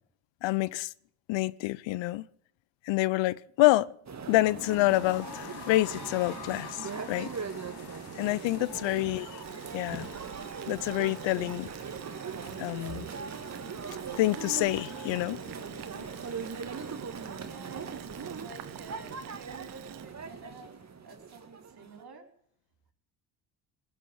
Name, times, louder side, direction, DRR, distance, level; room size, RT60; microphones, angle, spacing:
voice 1, 0.4-0.9 1.3-2.3 2.8-3.9 4.3-7.6 8.1-9.3 9.7-10.1 10.7-11.7 12.6-13.1 14.2-15.5 16.0-16.1, left 18 dB, 70° left, 0.8 m, -27 dB
sound 1, 4.1-22.0, right 6 dB, 35° right, 1.9 m, -40 dB
sound 2, 4.6-20.5 20.7-20.8 21.1-21.2, left 6 dB, 55° left, 3.6 m, -50 dB
voice 2, 8.5-9.1 12.9-13.0 17.4-20.7 21.0-22.3, right 4 dB, 50° right, 5.1 m, -49 dB
Boiling, 9.4-20.1, right 13 dB, 85° right, 1.4 m, -49 dB
20.0 x 7.5 x 9.5 m
hypercardioid pair, 60°, 46 cm